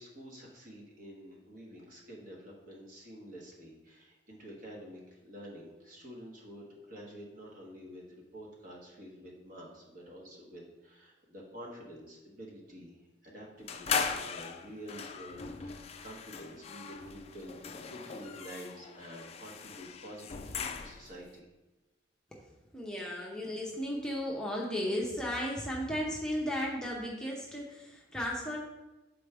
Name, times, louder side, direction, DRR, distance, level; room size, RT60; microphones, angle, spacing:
voice 1, 0.0-13.0 13.2-21.4, equal, 50° right, -2 dB, 1.3 m, -48 dB
sound 1, 13.7-21.2, left 5 dB, 35° left, 0.3 m, -39 dB
voice 2, 22.7-28.6, equal, 5° left, -4 dB, 0.7 m, -35 dB
7.1 x 4.3 x 3.4 m, 1.0 s
head